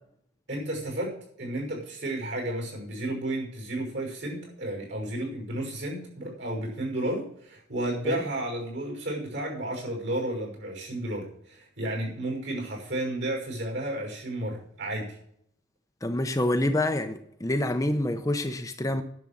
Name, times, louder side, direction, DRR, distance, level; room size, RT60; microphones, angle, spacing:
voice 1, 0.5-15.2, right 1 dB, 65° right, 5.7 m, -32 dB
voice 2, 16.0-19.0, left 1 dB, 15° left, 0.6 m, -27 dB
10.5 x 6.6 x 8.9 m
head